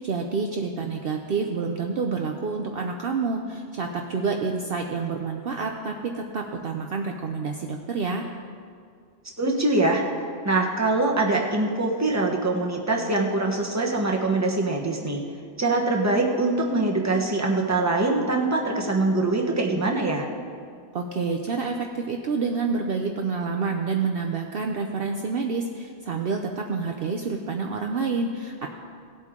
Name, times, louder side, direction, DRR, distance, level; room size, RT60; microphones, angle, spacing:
voice 1, 0.0-8.2 20.9-28.7, right 4 dB, 60° right, 2 dB, 0.8 m, -28 dB
voice 2, 9.4-10.0 10.4-15.2 15.6-20.3, right 2 dB, 15° right, -1 dB, 1.2 m, -23 dB
18.0 x 8.1 x 3.7 m, 2.2 s
omnidirectional pair, 1.2 m